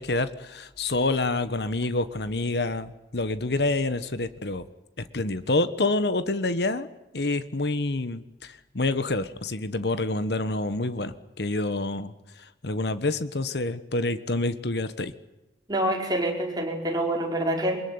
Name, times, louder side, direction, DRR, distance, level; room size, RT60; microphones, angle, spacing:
voice 1, 0.0-4.6 5.1-6.9 7.1-15.1, left 2 dB, 65° left, 13 dB, 1.3 m, -27 dB
voice 2, 15.7-17.8, right 1 dB, 25° right, 1 dB, 5.2 m, -26 dB
23.5 x 21.5 x 9.7 m, 0.97 s
head